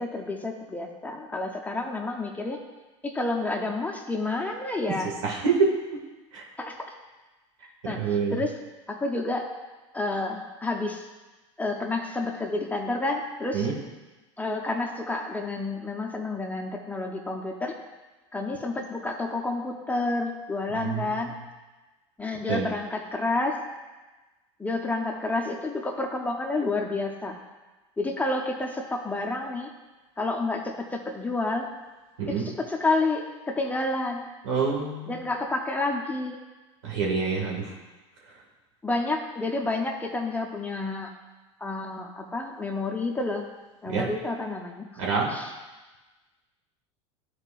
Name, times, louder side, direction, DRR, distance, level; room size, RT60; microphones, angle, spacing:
voice 1, 0.0-2.6 3.0-5.1 6.6-6.8 7.8-8.5 8.9-9.5 9.9-11.1 11.6-13.7 14.4-17.8 18.3-21.3 22.2-23.6 24.6-27.4 28.0-29.7 30.2-31.7 32.3-34.3 35.1-36.4 38.8-41.1 41.6-43.4 43.8-44.8 45.3-45.5, left 2 dB, 10° left, 1 dB, 0.8 m, -29 dB
voice 2, 5.2-5.7 6.3-6.4 7.8-8.4 13.5-13.7 20.7-21.3 22.5-22.7 32.2-32.5 34.4-35.2 36.8-37.7 43.9-44.1 45.0-45.3, right 5 dB, 75° right, -3 dB, 2.1 m, -26 dB
12.0 x 4.5 x 2.5 m, 1.2 s
hypercardioid pair, 95°, 16 cm